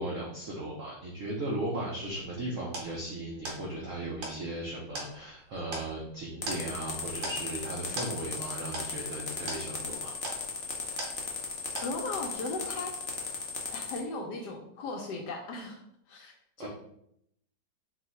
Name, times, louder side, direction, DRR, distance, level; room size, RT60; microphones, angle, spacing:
voice 1, 0.0-10.1 16.6-16.7, right 1 dB, 85° right, -3 dB, 0.6 m, -36 dB
sound 1, 2.1-11.5 11.8-12.3, right 2 dB, 70° right, 1.7 m, -41 dB
sound 2, 6.4-14.0, left 5 dB, 90° left, 0.5 m, -36 dB
voice 2, 11.8-12.9 13.7-15.8 16.1-16.7, left 3 dB, 70° left, 2 dB, 1.0 m, -37 dB
3.7 x 2.5 x 4.1 m, 0.73 s
omnidirectional pair, 2.2 m